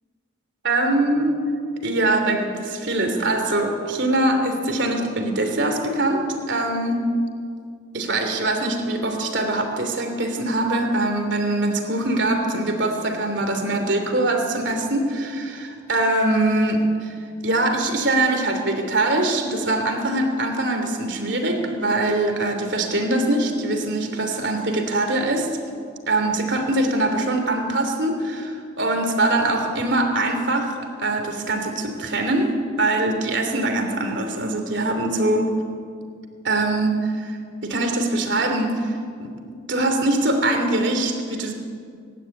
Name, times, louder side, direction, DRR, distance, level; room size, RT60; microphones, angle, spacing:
voice 1, 0.6-1.4 1.8-7.0 7.9-17.1 17.4-25.5 26.1-30.7 31.0-35.5 36.4-38.9 39.2-39.3 39.7-41.5, right 2 dB, 60° right, 4 dB, 3.0 m, -23 dB
24.5 x 11.5 x 9.4 m, 2.2 s
head